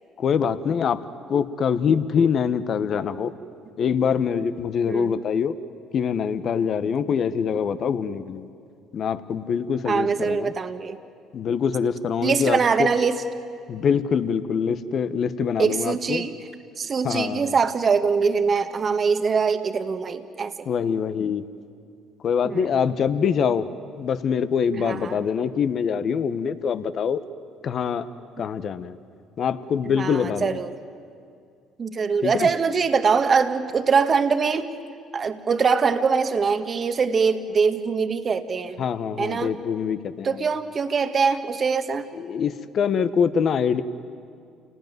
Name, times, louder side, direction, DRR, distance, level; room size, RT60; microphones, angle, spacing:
voice 1, 0.2-1.0 1.3-3.3 3.8-5.5 5.9-8.5 8.9-10.5 11.3-12.9 13.7-16.3 17.0-17.6 20.7-21.4 22.2-23.7 24.0-27.2 27.6-28.0 28.4-29.0 29.4-30.6 32.2-32.5 38.8-40.4 42.1-43.8, left 7 dB, 55° left, 12 dB, 1.2 m, -24 dB
voice 2, 4.9-5.2 9.8-11.0 12.2-13.2 15.6-16.4 16.8-20.7 22.4-22.7 24.8-25.2 29.9-30.8 31.8-34.7 35.1-38.8 39.2-39.6 40.2-42.1, right 5 dB, 40° right, 8 dB, 1.5 m, -23 dB
29.0 x 19.0 x 9.4 m, 2.3 s
hypercardioid pair, 65°, 0 cm